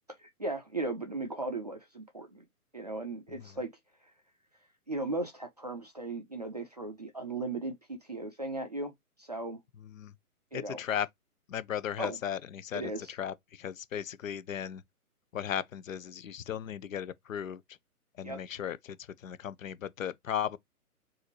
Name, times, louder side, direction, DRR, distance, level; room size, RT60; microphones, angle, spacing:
voice 1, 0.2-2.4 2.7-3.7 4.9-8.9 9.2-9.6 10.5-10.8 12.0-12.2 12.7-13.1 18.2-18.4, right 2 dB, 30° right, 0.4 m, -37 dB
voice 2, 9.8-10.1 10.5-11.1 11.5-14.8 15.3-17.8 18.2-20.6, left 9 dB, 60° left, 0.5 m, -36 dB
3.9 x 2.6 x 2.9 m
figure-of-eight pair, 135°, 46 cm